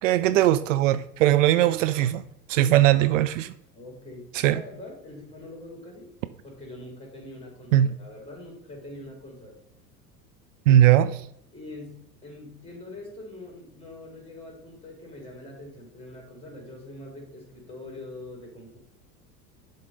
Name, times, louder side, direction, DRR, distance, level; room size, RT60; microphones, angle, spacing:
voice 1, 0.0-2.2 2.5-3.5 4.4-4.6 7.7-7.9 10.7-11.2, right 13 dB, 55° right, 0.5 m, -19 dB
voice 2, 2.7-3.1 3.7-6.1 6.4-9.6 11.5-18.8, left 2 dB, 10° left, 3.2 m, -43 dB
10.5 x 3.8 x 3.9 m
figure-of-eight pair, 75°, 48 cm